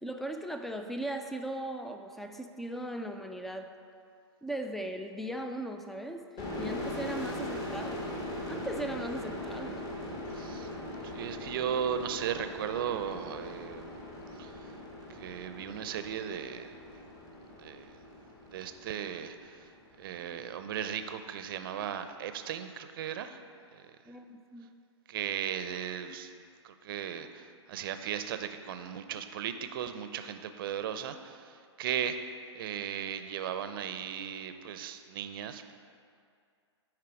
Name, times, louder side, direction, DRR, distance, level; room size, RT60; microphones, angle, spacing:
voice 1, 0.0-3.7 4.4-6.2 6.6-8.1 8.5-9.8 24.1-24.7, right 1 dB, ahead, 5 dB, 0.4 m, -38 dB
sound 1, 6.4-19.8, left 1 dB, 25° left, 1.3 m, -40 dB
voice 2, 10.3-10.7 11.0-14.0 14.4-14.8 15.1-16.7 17.6-18.0 18.5-19.7 20.0-23.4 23.7-23.9 25.1-26.3 26.6-35.7, right 8 dB, 50° right, 9 dB, 0.6 m, -37 dB
9.5 x 4.7 x 4.8 m, 2.3 s
hypercardioid pair, 120°, 15 cm